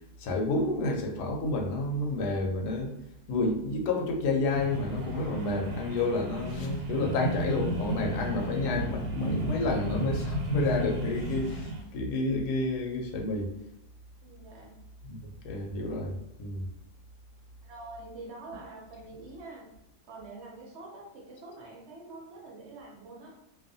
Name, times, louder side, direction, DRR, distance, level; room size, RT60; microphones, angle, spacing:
voice 1, 0.2-2.9 3.3-13.5 15.0-15.2 15.4-16.7, left 2 dB, 80° left, 2 dB, 1.1 m, -30 dB
sound 1, 4.5-11.8, right 1 dB, 90° right, 1.2 m, -33 dB
voice 2, 14.2-14.8 17.6-19.7 20.1-23.4, right 2 dB, 60° right, -2 dB, 0.7 m, -46 dB
2.5 x 2.3 x 2.5 m, 0.80 s
omnidirectional pair, 1.7 m